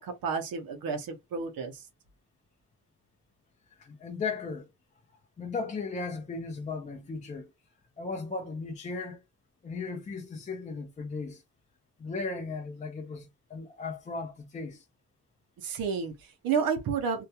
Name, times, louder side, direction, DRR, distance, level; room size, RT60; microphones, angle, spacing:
voice 1, 0.0-1.9 15.6-17.2, right 6 dB, 75° right, 0.6 m, -31 dB
voice 2, 3.8-4.7 5.4-7.5 8.0-9.2 9.6-11.4 12.0-14.8, left 4 dB, 25° left, 0.3 m, -36 dB
2.3 x 2.2 x 2.7 m
wide cardioid pair, 165°, 35 cm